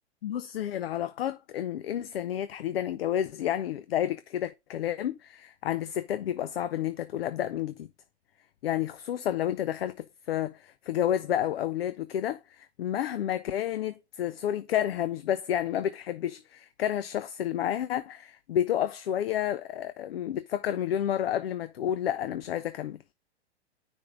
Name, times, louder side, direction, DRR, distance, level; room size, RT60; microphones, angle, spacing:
voice 1, 0.2-7.9 8.6-23.0, left 11 dB, 60° left, 0.6 m, -30 dB
9.7 x 3.6 x 4.0 m
hypercardioid pair, 120°, 33 cm